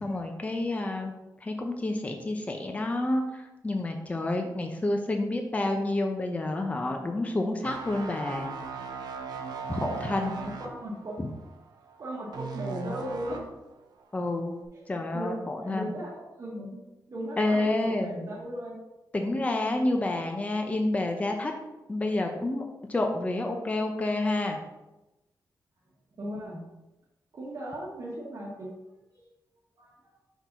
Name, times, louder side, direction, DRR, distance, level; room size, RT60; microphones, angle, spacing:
voice 1, 0.0-1.1 1.4-8.5 9.7-10.4 11.2-11.3 14.1-14.6 14.9-16.0 17.4-18.1 19.1-21.5 21.9-24.6, left 2 dB, 20° left, 3 dB, 0.6 m, -29 dB
sound 1, 7.6-13.6 14.0-14.3, right 5 dB, 85° right, 0.6 m, -38 dB
voice 2, 10.0-11.2 12.0-13.4 15.1-16.8 17.1-17.7 18.0-18.8 26.2-26.6 27.3-28.7 29.1-29.3 29.8-30.1, right 1 dB, 55° right, -4 dB, 1.4 m, -37 dB
4.5 x 3.8 x 5.6 m, 0.99 s
wide cardioid pair, 125°, 7 cm